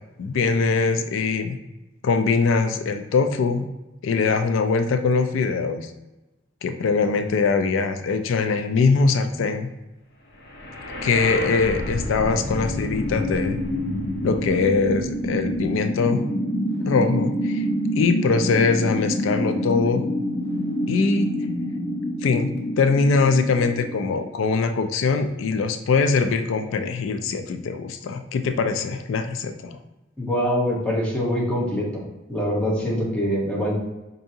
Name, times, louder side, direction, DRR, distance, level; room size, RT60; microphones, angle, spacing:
voice 1, 0.2-1.6 2.0-3.7 4.0-5.9 6.6-9.7 11.0-13.6 14.2-16.3 16.9-17.7 18.0-20.1 20.9-21.3 22.2-29.8, left 4 dB, 80° left, 8 dB, 0.3 m, -22 dB
sound 1, 10.5-24.5, equal, 60° left, 0.7 m, -27 dB
voice 2, 30.2-32.0 32.3-33.7, equal, 5° left, -5 dB, 1.0 m, -24 dB
4.5 x 2.6 x 2.7 m, 1.0 s
head